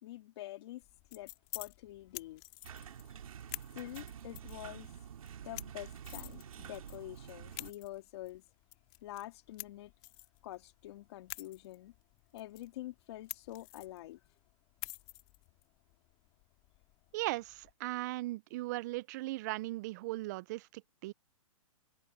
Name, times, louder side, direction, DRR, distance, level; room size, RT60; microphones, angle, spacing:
voice 1, 0.0-0.8 1.1-2.4 3.7-4.9 5.4-8.4 9.0-9.9 10.4-11.9 12.3-14.2, left 15 dB, 50° left, 3.0 m, -46 dB
sound 1, 0.8-17.7, left 22 dB, 30° left, 2.3 m, -51 dB
sound 2, 2.6-7.7, right 9 dB, 75° right, 2.7 m, -48 dB
voice 2, 17.1-21.1, right 19 dB, 30° right, 0.4 m, -38 dB
open air
hypercardioid pair, 150°, 18 cm